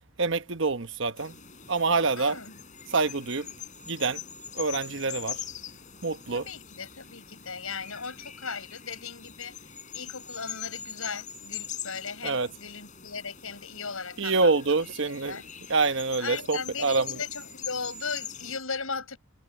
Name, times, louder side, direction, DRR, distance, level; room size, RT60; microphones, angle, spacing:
voice 1, 0.2-1.4 1.7-2.4 2.9-3.5 3.9-4.2 4.5-5.4 6.0-6.5 12.2-12.5 14.2-15.4 15.7-17.2, right 3 dB, 60° right, 1.1 m, -26 dB
sound 1, 1.2-18.6, left 8 dB, 35° left, 7.1 m, -42 dB
voice 2, 2.2-2.5 6.3-9.5 9.9-14.8 15.3-15.5 16.2-19.2, left 5 dB, 80° left, 6.9 m, -37 dB
head